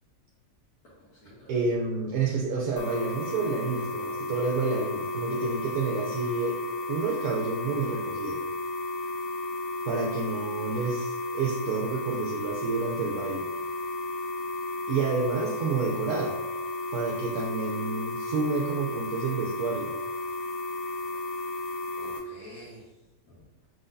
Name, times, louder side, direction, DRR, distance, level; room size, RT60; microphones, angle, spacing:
voice 1, 1.0-1.5 21.0-21.1 22.0-22.9 23.3-23.6, equal, 85° left, -10 dB, 1.8 m, -49 dB
voice 2, 1.5-6.6 6.9-8.4 9.9-13.5 14.9-16.4 16.9-19.9, right 4 dB, 75° right, 0 dB, 1.1 m, -29 dB
sound 1, 2.8-22.2, left 2 dB, 60° left, 1.3 m, -33 dB
4.6 x 3.9 x 2.6 m, 1.0 s
omnidirectional pair, 1.6 m